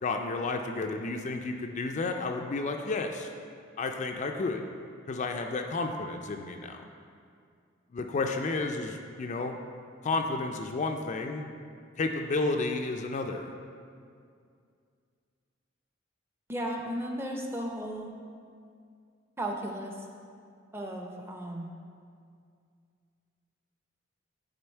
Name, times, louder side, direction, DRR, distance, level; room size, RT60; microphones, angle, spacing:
voice 1, 0.0-3.3 3.8-4.7 5.1-6.8 7.9-9.6 10.0-11.5 12.0-13.5, left 3 dB, 35° left, 4 dB, 0.3 m, -31 dB
voice 2, 16.5-18.1 19.4-20.0 20.7-21.7, right 1 dB, 10° right, 1 dB, 0.6 m, -35 dB
10.5 x 3.9 x 4.4 m, 2.3 s
head